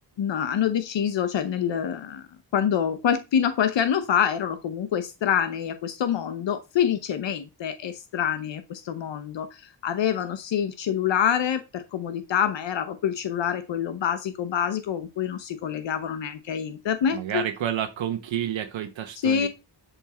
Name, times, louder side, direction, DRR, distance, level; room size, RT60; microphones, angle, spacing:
voice 1, 0.2-2.2 2.5-17.4 19.2-19.5, left 8 dB, 75° left, 1.0 m, -26 dB
voice 2, 17.1-19.5, right 10 dB, 90° right, 1.1 m, -29 dB
11.0 x 5.5 x 4.3 m
wide cardioid pair, 175°, 45 cm